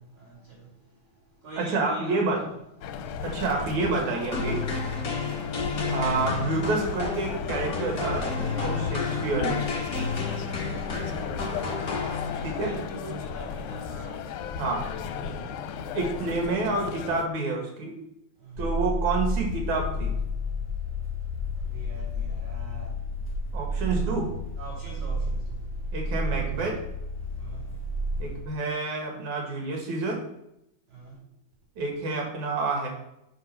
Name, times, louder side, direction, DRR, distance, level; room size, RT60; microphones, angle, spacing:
voice 1, 0.0-2.5 2.9-3.3 4.9-5.2 5.7-5.9 12.3-14.3 15.2-15.5 18.4-18.6 21.6-22.9 24.6-25.7 27.4-27.9 30.9-31.2, right 3 dB, 45° right, 4.0 m, -44 dB
voice 2, 1.6-2.5 3.2-4.6 5.9-9.6 12.4-12.7 14.6-14.8 15.9-18.0 18.6-20.1 23.5-24.3 25.9-26.8 28.2-30.2 31.8-32.9, right 3 dB, 70° right, 3.1 m, -28 dB
sound 1, 2.8-17.3, left 7 dB, 80° left, 2.1 m, -35 dB
sound 2, 4.3-12.7, left 4 dB, 40° left, 1.4 m, -31 dB
sound 3, 18.6-28.4, left 1 dB, 10° left, 0.7 m, -31 dB
7.5 x 6.2 x 5.8 m
omnidirectional pair, 3.4 m